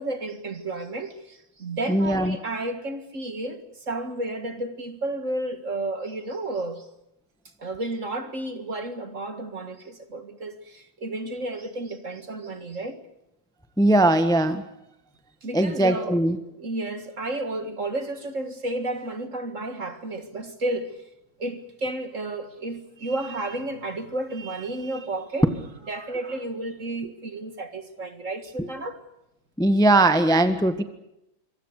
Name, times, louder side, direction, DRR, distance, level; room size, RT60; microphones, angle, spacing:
voice 1, 0.0-6.9 7.6-13.0 15.4-16.2 16.6-21.0 21.4-25.4 25.9-29.0, right 2 dB, 40° right, 2.0 m, -32 dB
voice 2, 1.9-2.4 13.8-14.6 15.5-16.4 25.4-25.5 28.6-28.7 29.6-30.8, right 1 dB, ahead, 1.2 m, -20 dB
26.5 x 23.5 x 6.7 m
omnidirectional pair, 2.2 m